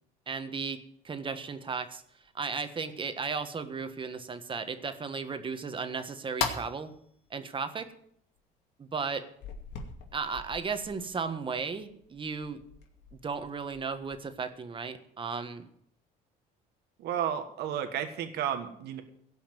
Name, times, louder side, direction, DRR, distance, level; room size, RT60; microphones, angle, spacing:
voice 1, 0.3-0.8 1.0-2.0 2.3-6.9 7.3-7.9 8.8-9.3 10.1-12.6 13.2-15.6, right 5 dB, 30° right, 9 dB, 1.5 m, -35 dB
sound 1, 1.9-2.3 2.8-2.9 3.3-3.4 3.9-4.6 5.0-5.1 5.6-5.7 6.1-7.3 7.8-7.9 8.4-8.5 8.9-9.0 9.4-14.4, left 6 dB, 85° left, 2.4 m, -40 dB
voice 2, 17.0-19.0, right 9 dB, 80° right, 7 dB, 1.5 m, -32 dB
16.5 x 5.8 x 9.1 m, 0.69 s
cardioid pair, 110°, 17 cm